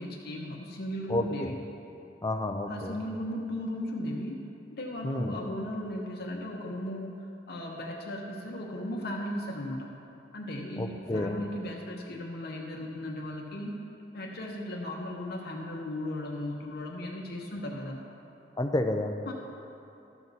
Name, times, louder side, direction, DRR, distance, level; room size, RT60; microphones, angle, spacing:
voice 1, 0.0-1.6 2.7-4.4 4.7-9.9 10.3-13.7 14.1-18.0 19.2-19.3, left 1 dB, 65° left, -1 dB, 0.9 m, -36 dB
voice 2, 1.1-1.5 2.2-3.0 5.0-5.4 10.8-11.4 18.6-19.1, left 1 dB, 20° left, 5 dB, 0.5 m, -30 dB
12.5 x 6.0 x 4.1 m, 2.8 s
head